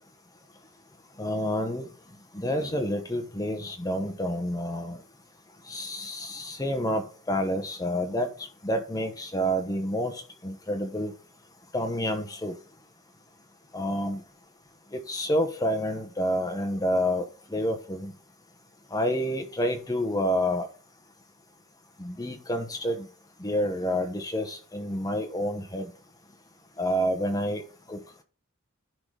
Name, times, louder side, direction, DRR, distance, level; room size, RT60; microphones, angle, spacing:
voice 1, 1.2-1.9 2.3-5.0 5.7-8.3 8.6-10.1 10.4-11.1 11.7-12.5 13.7-14.2 14.9-17.2 17.5-18.1 18.9-20.7 22.0-23.1 23.4-25.9 26.8-27.6 27.9-28.0, equal, 15° left, 1.1 m, -28 dB
10.5 x 3.9 x 4.9 m
head